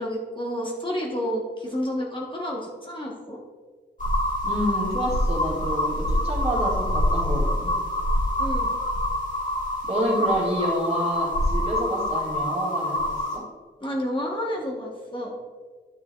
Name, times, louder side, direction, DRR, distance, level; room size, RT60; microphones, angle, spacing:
voice 1, 0.0-3.4 8.4-8.8 13.8-15.3, equal, 25° left, -2 dB, 1.1 m, -30 dB
sound 1, 4.0-13.4, left 1 dB, 45° left, 1.6 m, -25 dB
voice 2, 4.4-7.7 9.8-13.4, equal, 35° right, -4 dB, 2.0 m, -28 dB
10.0 x 6.7 x 2.4 m, 1.4 s
wide cardioid pair, 90°, 18 cm